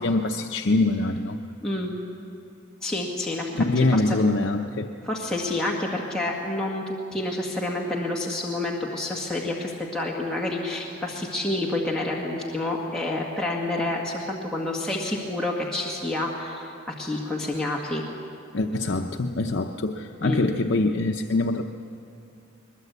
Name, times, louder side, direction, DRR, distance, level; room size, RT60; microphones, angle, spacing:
voice 1, 0.0-1.4 3.5-4.9 18.5-21.7, left 2 dB, 65° left, 4 dB, 0.7 m, -24 dB
voice 2, 1.6-1.9 2.8-3.7 3.9-4.0 5.1-18.0 20.2-20.5, left 2 dB, 5° left, -4 dB, 1.8 m, -28 dB
21.5 x 21.5 x 8.2 m, 2.7 s
head